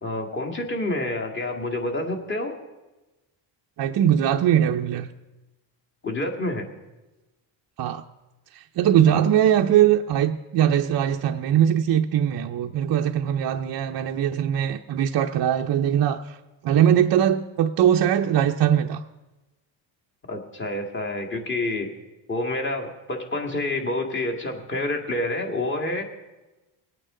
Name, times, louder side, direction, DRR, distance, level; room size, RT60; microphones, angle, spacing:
voice 1, 0.0-2.5 6.0-6.7 9.1-9.2 20.3-21.9 22.3-26.0, left 2 dB, 25° left, 1 dB, 2.0 m, -28 dB
voice 2, 3.8-5.1 7.8-8.0 8.5-16.4 16.6-19.0, right 10 dB, 50° right, 2 dB, 0.6 m, -21 dB
22.5 x 8.9 x 3.8 m, 1.1 s
cardioid pair, 120°, 50 cm